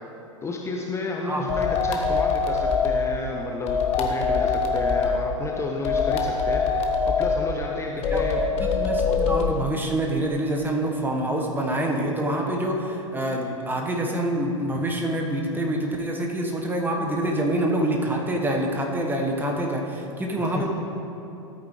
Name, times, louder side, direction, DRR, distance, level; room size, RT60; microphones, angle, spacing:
voice 1, 0.4-8.4 20.5-20.6, left 3 dB, 15° left, 0 dB, 0.8 m, -31 dB
voice 2, 1.3-1.6 8.1-20.7, right 1 dB, 10° right, 1 dB, 1.2 m, -26 dB
sound 1, 1.5-3.0 3.7-5.2 5.8-7.4 8.0-9.5, left 5 dB, 40° left, 1.2 m, -23 dB
13.5 x 8.5 x 3.2 m, 2.8 s
figure-of-eight pair, 95°, 17 cm